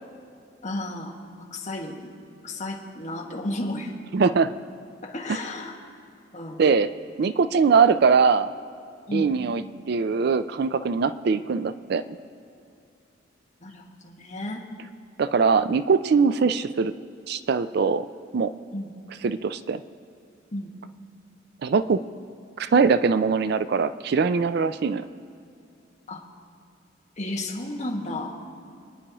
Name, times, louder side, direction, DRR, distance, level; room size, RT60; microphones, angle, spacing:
voice 1, 0.6-2.1 2.4-3.9 5.0-5.8 6.3-6.6 9.1-9.3 13.6-14.6 18.7-18.9 20.5-20.7 26.1-26.2 27.2-28.4, left 1 dB, 40° left, -1 dB, 1.7 m, -33 dB
voice 2, 4.1-4.5 6.6-6.9 7.2-8.5 9.1-12.2 15.2-16.9 17.3-18.1 18.3-18.5 19.2-19.8 21.6-22.0 22.6-25.0, right 5 dB, 55° right, 12 dB, 0.4 m, -22 dB
26.5 x 9.9 x 3.0 m, 2.6 s
head